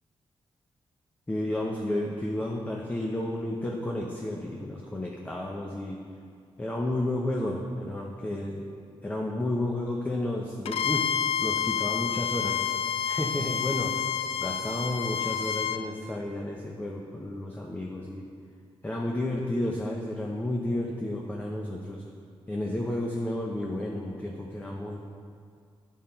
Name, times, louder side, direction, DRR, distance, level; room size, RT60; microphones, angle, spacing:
voice 1, 1.3-6.0 6.6-8.6 9.0-11.1 11.4-12.7 13.1-13.9 14.4-18.2 18.8-22.0 22.5-25.0, left 1 dB, 15° left, -1 dB, 0.7 m, -32 dB
Bowed string instrument, 10.7-15.8, left 8 dB, 75° left, 0.3 m, -29 dB
9.4 x 5.5 x 4.3 m, 2.2 s
cardioid pair, 105°, 10 cm